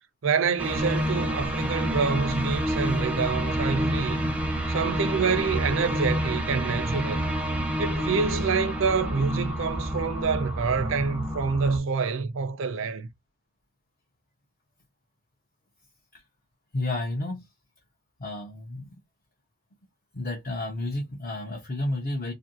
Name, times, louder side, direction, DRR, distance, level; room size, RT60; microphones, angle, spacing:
voice 1, 0.2-4.3 4.7-7.3 7.8-13.1, right 5 dB, 75° right, 0.5 m, -27 dB
sound 1, 0.6-11.8, equal, 5° right, 0.5 m, -28 dB
voice 2, 16.7-17.5 18.2-19.0 20.1-22.3, left 2 dB, 45° left, 0.6 m, -31 dB
2.5 x 2.5 x 2.8 m
head